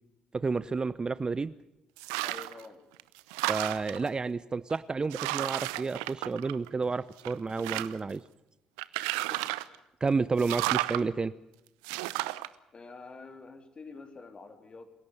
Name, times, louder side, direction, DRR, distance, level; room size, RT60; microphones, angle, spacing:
voice 1, 0.3-1.5 3.5-8.2 10.0-11.3, right 4 dB, 30° right, 17 dB, 0.7 m, -30 dB
sound 1, 2.0-2.6 3.0-4.1 4.7-4.8 5.1-6.8 7.2-8.1 8.8-9.8 10.4-11.0 11.8-12.5, right 19 dB, 75° right, 0.8 m, -32 dB
voice 2, 2.2-2.8 9.3-9.5 10.7-11.0 12.7-14.9, left 4 dB, 35° left, 7 dB, 3.7 m, -47 dB
28.0 x 17.0 x 6.8 m, 0.90 s
figure-of-eight pair, 50°, 3 cm